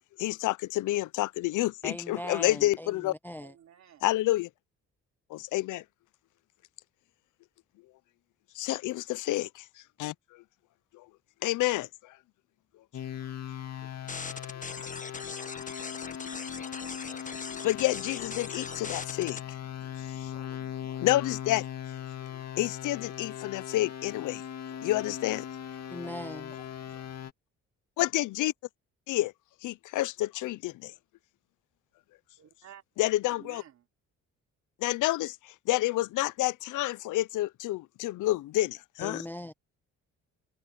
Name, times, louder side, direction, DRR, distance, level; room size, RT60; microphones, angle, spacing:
voice 1, 0.2-3.1 4.0-4.5 5.3-5.8 8.6-9.5 10.0-10.1 11.4-11.9 17.6-19.4 21.0-21.6 22.6-24.4 24.8-25.4 28.0-28.5 29.1-29.3 29.6-30.9 33.0-33.6 34.8-35.3 35.7-39.2, left 16 dB, 85° left, 0.7 m, -29 dB
voice 2, 1.8-3.5 25.9-26.6 39.0-39.5, left 1 dB, 5° left, 0.4 m, -40 dB
voice 3, 3.4-4.0 32.4-32.8 33.3-33.8, right 10 dB, 65° right, 3.4 m, -53 dB
sound 1, 12.9-27.3, left 9 dB, 60° left, 2.5 m, -39 dB
sound 2, 14.1-19.4, left 4 dB, 25° left, 1.6 m, -40 dB
cardioid pair, 90°, 30 cm